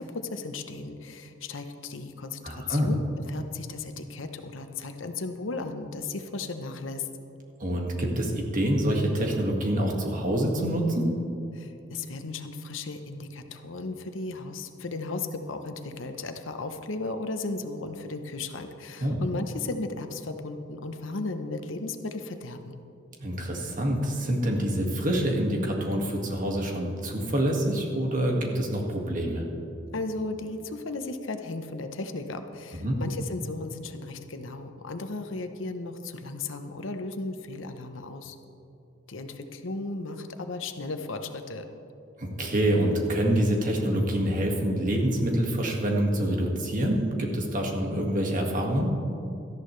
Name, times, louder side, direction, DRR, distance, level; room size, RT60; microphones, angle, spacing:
voice 1, 0.0-7.1 11.5-22.8 29.9-38.4 39.1-41.7, left 3 dB, 85° left, 7 dB, 0.9 m, -35 dB
voice 2, 2.4-2.9 7.6-11.1 19.0-19.2 23.2-29.4 32.8-33.0 42.2-49.0, right 1 dB, 45° right, 0 dB, 2.0 m, -26 dB
18.0 x 13.5 x 3.3 m, 2.8 s
head